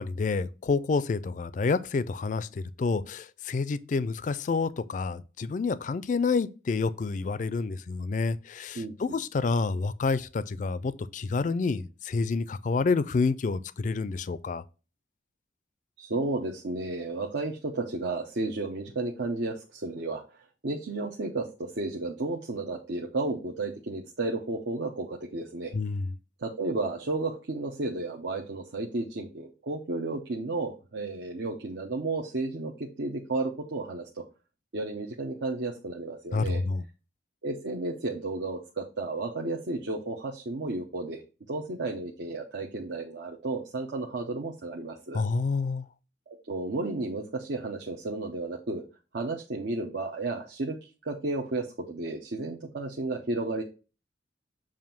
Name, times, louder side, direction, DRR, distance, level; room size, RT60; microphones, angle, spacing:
voice 1, 0.0-2.5 2.8-14.6 25.7-26.1 36.3-36.8 45.1-45.8, left 4 dB, 40° left, 0.3 m, -28 dB
voice 2, 8.7-9.2 16.0-20.2 20.6-25.7 26.4-34.2 34.7-36.6 37.4-41.2 41.5-45.2 46.3-48.8 49.1-50.8 51.0-53.6, right 2 dB, 70° right, 0.8 m, -33 dB
7.2 x 2.6 x 5.8 m
head